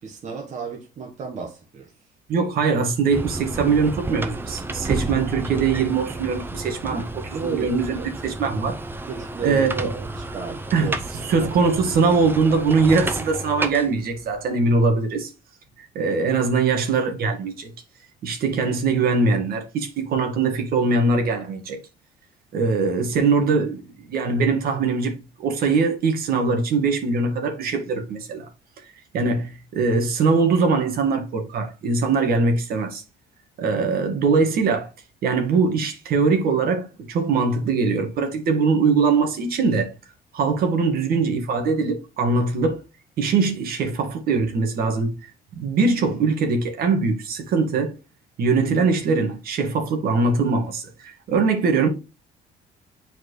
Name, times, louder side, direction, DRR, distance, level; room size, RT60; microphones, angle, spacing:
voice 1, 0.0-1.9 6.8-8.1 9.1-11.4, right 6 dB, 45° right, 1.2 m, -34 dB
voice 2, 2.3-7.0 7.3-8.8 9.4-9.9 10.7-10.9 11.2-15.3 15.9-17.7 18.2-21.8 22.5-23.8 24.1-28.4 29.1-33.0 33.6-34.9 35.2-39.9 40.3-42.8 43.2-47.9 48.4-51.9, right 4 dB, 60° right, 1.7 m, -22 dB
sound 1, 3.1-14.5, right 2 dB, 10° right, 0.6 m, -31 dB
7.9 x 4.5 x 3.2 m
cardioid pair, 110°, 17 cm